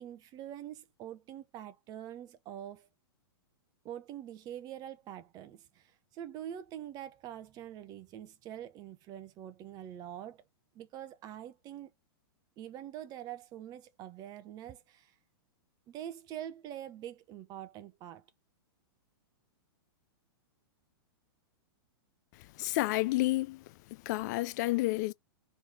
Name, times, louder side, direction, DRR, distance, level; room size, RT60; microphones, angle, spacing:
voice 1, 0.0-2.9 3.8-10.4 10.7-11.9 12.6-15.1 15.9-18.2, right 11 dB, 30° right, 0.7 m, -45 dB
voice 2, 22.6-23.6 24.1-25.1, left 19 dB, 45° left, 0.4 m, -30 dB
3.3 x 3.2 x 3.8 m
hypercardioid pair, 130°, 13 cm